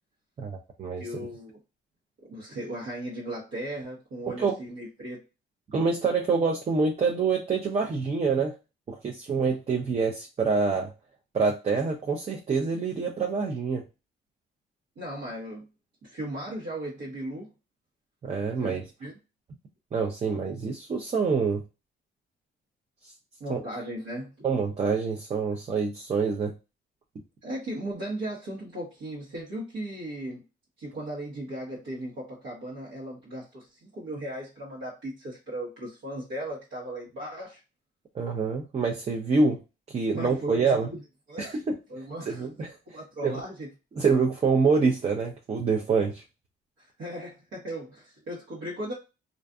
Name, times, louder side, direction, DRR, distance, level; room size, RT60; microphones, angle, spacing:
voice 1, 0.4-1.1 4.4-4.5 5.7-8.5 8.9-10.9 11.3-13.8 18.2-18.8 19.9-21.6 23.5-23.6 24.4-26.5 38.1-39.6 39.9-40.9 41.4-41.7 42.3-42.8 43.2-43.4 44.0-46.2, right 4 dB, 30° right, 1 dB, 0.5 m, -26 dB
voice 2, 1.0-1.5 2.2-5.2 15.0-15.7 16.0-17.5 18.6-19.1 23.4-24.5 27.4-30.4 30.8-37.6 40.1-41.0 41.3-41.6 41.9-42.5 42.9-43.7 46.8-48.9, right 1 dB, 75° right, -6 dB, 1.1 m, -37 dB
2.5 x 2.5 x 2.3 m, 0.28 s
cardioid pair, 90°, 20 cm